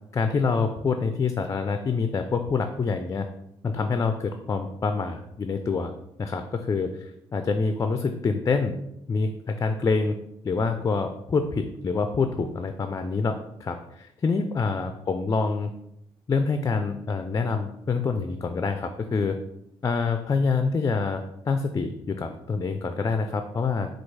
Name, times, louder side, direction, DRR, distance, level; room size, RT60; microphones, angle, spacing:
voice 1, 0.1-3.3 3.6-5.9 6.2-8.7 9.1-10.2 10.4-13.4 13.6-15.7 16.3-19.4 19.8-23.9, left 4 dB, 30° left, 7 dB, 0.4 m, -26 dB
4.4 x 2.4 x 4.6 m, 0.80 s
supercardioid pair, 65°, 11 cm